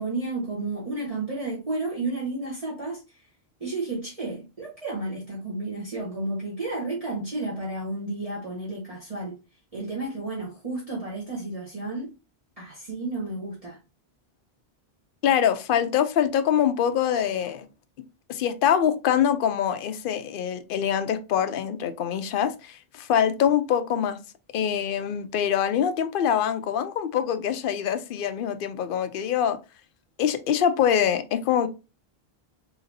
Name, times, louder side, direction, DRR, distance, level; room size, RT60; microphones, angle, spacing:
voice 1, 0.0-3.3 3.6-9.4 9.7-12.1 12.6-13.8, right 2 dB, 35° right, 1.1 m, -32 dB
voice 2, 15.2-17.7 18.3-24.2 24.5-29.6 30.2-31.7, left 9 dB, 65° left, 0.7 m, -24 dB
4.0 x 2.9 x 2.6 m
omnidirectional pair, 1.0 m